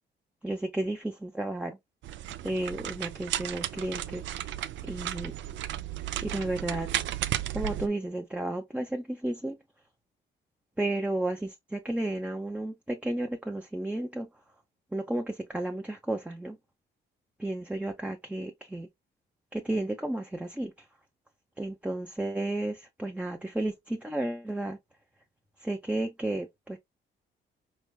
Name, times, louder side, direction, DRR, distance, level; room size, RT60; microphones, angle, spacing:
voice 1, 0.4-1.8 2.4-4.2 4.9-5.3 6.2-6.9 7.5-9.6 10.8-14.3 14.9-16.6 17.4-18.9 19.5-20.7 21.6-24.8 25.6-26.8, right 1 dB, 5° right, 0.6 m, -32 dB
sound 1, 2.0-7.9, right 12 dB, 70° right, 0.5 m, -34 dB
4.4 x 3.3 x 2.2 m
cardioid pair, 90°, 20 cm